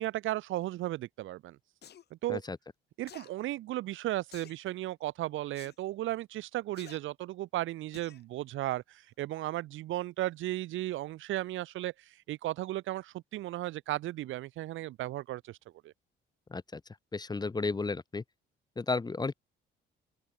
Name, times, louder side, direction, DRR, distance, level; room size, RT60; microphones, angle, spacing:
voice 1, 0.0-1.6 2.1-2.4 3.0-15.6 15.8-15.9, right 15 dB, 80° right, 0.7 m, -35 dB
sound 1, 1.8-2.0 3.1-3.3 4.3-4.6 5.5-5.8 6.7-7.0 7.9-8.2 8.7-8.8, left 9 dB, 55° left, 1.3 m, -51 dB
voice 2, 16.5-16.8 17.1-18.2 18.8-19.3, left 3 dB, 20° left, 0.8 m, -33 dB
open air
cardioid pair, 90°, 20 cm